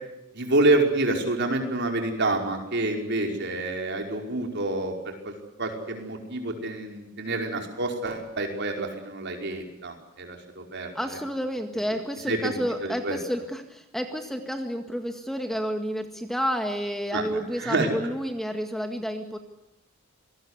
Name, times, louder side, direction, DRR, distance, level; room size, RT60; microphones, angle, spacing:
voice 1, 0.3-5.3 5.6-10.9 12.3-13.2 17.1-17.9, right 2 dB, 55° right, 3 dB, 5.2 m, -27 dB
voice 2, 11.0-19.4, equal, ahead, 5 dB, 1.8 m, -30 dB
27.5 x 20.5 x 8.2 m, 0.88 s
head